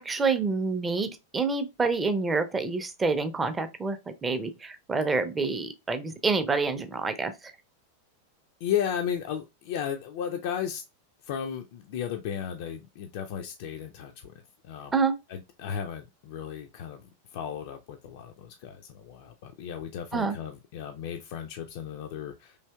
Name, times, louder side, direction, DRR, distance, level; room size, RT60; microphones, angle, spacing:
voice 1, 0.0-7.3 14.9-15.2 20.1-20.3, right 4 dB, 15° right, 0.4 m, -27 dB
voice 2, 8.6-10.8 11.2-14.3 14.6-14.9 15.3-22.6, left 8 dB, 50° left, 0.3 m, -34 dB
3.2 x 2.7 x 2.2 m
figure-of-eight pair, 90°, 0 cm